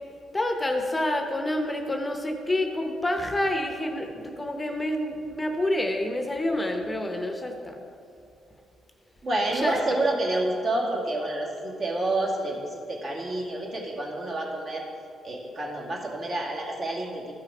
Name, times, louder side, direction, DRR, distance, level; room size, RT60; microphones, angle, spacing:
voice 1, 0.3-7.8 9.6-9.7, left 1 dB, 15° left, 4 dB, 0.8 m, -28 dB
voice 2, 9.2-14.8 15.2-17.2, right 2 dB, 50° right, -2 dB, 2.2 m, -28 dB
13.0 x 5.7 x 4.9 m, 2.5 s
cardioid pair, 90°, 0 cm